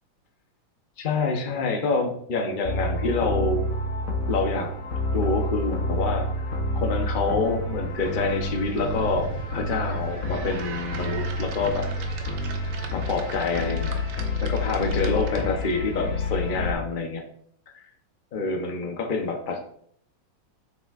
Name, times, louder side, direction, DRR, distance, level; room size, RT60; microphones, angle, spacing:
voice 1, 1.0-3.6 4.3-4.7 5.1-6.3 6.7-11.9 12.9-14.0 14.4-17.2 17.7-17.8 18.3-19.7, left 3 dB, 75° left, 3 dB, 0.4 m, -27 dB
sound 1, 2.6-16.7, left 1 dB, 50° left, 1.2 m, -29 dB
sound 2, 8.0-15.7, right 6 dB, 85° right, 1.7 m, -40 dB
8.2 x 5.7 x 2.5 m, 0.65 s
omnidirectional pair, 2.3 m